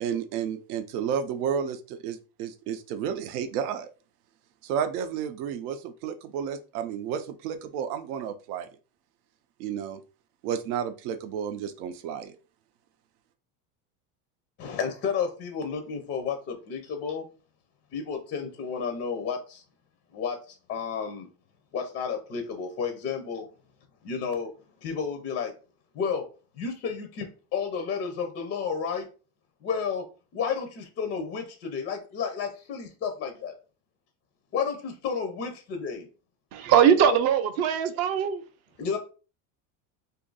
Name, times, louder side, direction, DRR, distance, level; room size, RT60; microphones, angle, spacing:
voice 1, 0.0-3.9 4.6-8.7 9.6-10.0 10.4-12.4, right 8 dB, 85° right, 0.6 m, -31 dB
voice 2, 14.6-17.3 17.9-19.6 20.1-21.3 21.7-23.5 24.0-24.5 24.8-25.5 25.9-26.3 26.5-29.1 29.6-30.1 30.3-33.5 34.5-36.1 37.0-37.2 38.8-39.0, left 6 dB, 25° left, 0.4 m, -31 dB
voice 3, 36.5-38.4, right 8 dB, 35° right, 0.4 m, -21 dB
2.6 x 2.5 x 3.8 m
supercardioid pair, 145°, 44 cm